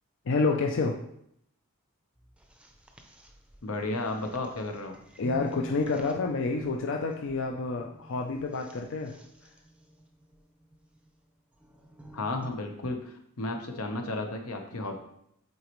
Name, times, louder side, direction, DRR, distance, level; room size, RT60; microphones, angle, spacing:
voice 1, 0.3-1.0 5.2-9.1, left 3 dB, 60° left, 2 dB, 0.5 m, -28 dB
sound 1, 2.2-12.6, right 1 dB, 5° right, 0.5 m, -49 dB
voice 2, 3.6-5.0 12.1-14.9, left 2 dB, 85° left, 4 dB, 1.0 m, -33 dB
8.3 x 3.9 x 3.1 m, 0.73 s
head